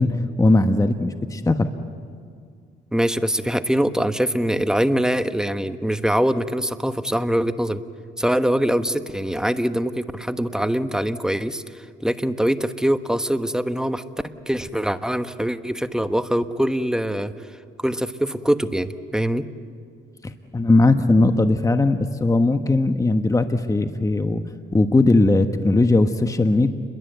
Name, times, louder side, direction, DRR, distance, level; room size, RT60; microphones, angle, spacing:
voice 1, 0.0-1.7 20.2-24.4 24.7-26.7, left 2 dB, 15° left, 8 dB, 1.3 m, -19 dB
voice 2, 2.9-7.8 8.2-17.3 17.8-19.5, equal, 5° right, 9 dB, 1.2 m, -23 dB
30.0 x 22.0 x 8.1 m, 2.1 s
cardioid pair, 90°, 20 cm